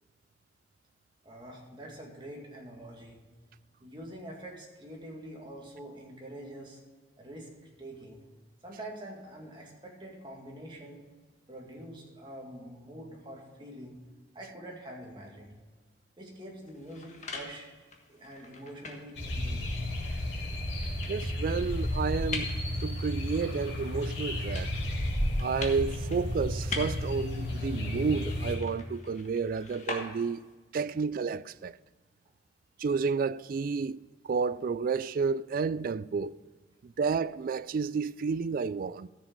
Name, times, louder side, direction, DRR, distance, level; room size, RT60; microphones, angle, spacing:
voice 1, 1.2-3.2 3.8-6.8 7.2-7.5 7.8-8.2 8.6-11.0 11.5-14.0 14.3-15.5 16.2-17.7 18.1-19.8, right 1 dB, 25° right, 2.2 m, -45 dB
sound 1, 16.6-30.5, left 3 dB, 40° left, 1.5 m, -44 dB
sound 2, 19.1-28.5, left 1 dB, 70° left, 2.9 m, -32 dB
voice 2, 21.1-22.5 22.8-24.7 25.4-30.4 30.7-31.8 32.8-36.4 36.8-39.1, right 5 dB, 50° right, 0.3 m, -31 dB
13.5 x 7.3 x 5.3 m
head